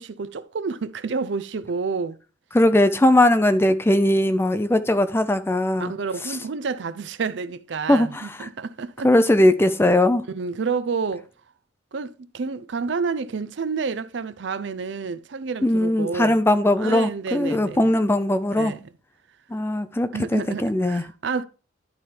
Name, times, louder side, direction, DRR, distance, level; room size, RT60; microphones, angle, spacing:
voice 1, 0.0-2.2 5.8-9.1 10.3-11.3 11.9-16.4 16.8-17.9 18.6-18.8 20.1-21.4, right 5 dB, 65° right, 0.5 m, -29 dB
voice 2, 2.5-5.9 7.9-8.5 9.0-10.2 15.6-18.7 19.5-21.0, left 1 dB, 10° left, 0.4 m, -19 dB
11.0 x 4.3 x 3.3 m
head